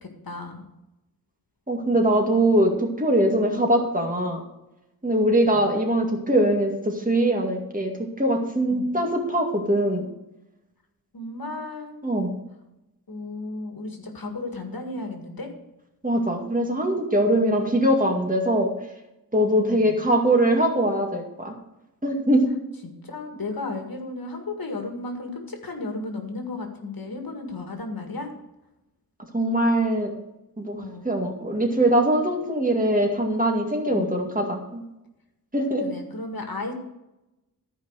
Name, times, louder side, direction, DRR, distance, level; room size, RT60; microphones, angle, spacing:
voice 1, 0.0-0.6 5.4-5.7 8.7-9.0 11.1-12.0 13.1-15.5 17.4-17.6 19.6-20.0 22.8-28.3 30.8-31.1 33.9-34.3 35.8-36.7, left 3 dB, 70° left, 4 dB, 2.0 m, -34 dB
voice 2, 1.7-4.4 5.0-10.1 12.0-12.3 16.0-18.7 19.3-21.5 22.0-22.5 29.3-30.1 30.6-34.8 35.5-35.9, right 1 dB, 20° right, 2 dB, 2.1 m, -22 dB
14.0 x 5.1 x 6.5 m, 0.92 s
wide cardioid pair, 90°, 36 cm